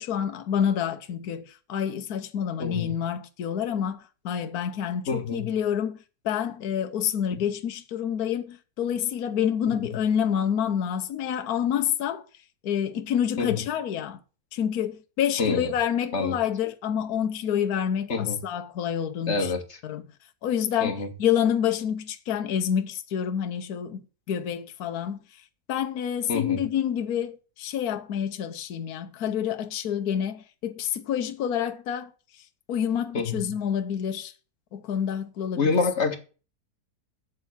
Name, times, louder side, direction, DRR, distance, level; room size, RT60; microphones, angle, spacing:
voice 1, 0.0-6.0 6.2-12.2 12.6-14.2 14.5-19.5 19.8-20.0 20.4-24.0 24.3-25.2 25.7-32.1 32.7-34.3 34.7-35.8, left 9 dB, 65° left, 1.3 m, -28 dB
voice 2, 2.6-2.9 5.1-5.5 7.3-7.4 9.8-9.9 13.4-13.7 15.4-15.7 16.1-16.4 18.1-18.4 19.3-19.8 20.8-21.1 26.3-26.6 33.1-33.6 35.5-36.2, left 4 dB, 45° left, 2.0 m, -27 dB
8.2 x 7.8 x 7.1 m
omnidirectional pair, 1.8 m